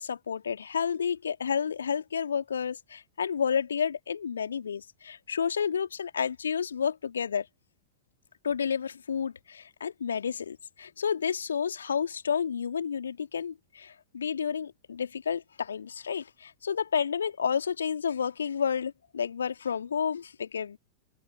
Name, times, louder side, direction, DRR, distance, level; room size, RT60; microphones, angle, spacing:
voice 1, 0.0-7.5 8.4-20.8, left 7 dB, 70° left, 2.3 m, -30 dB
open air
figure-of-eight pair, 90°, 0 cm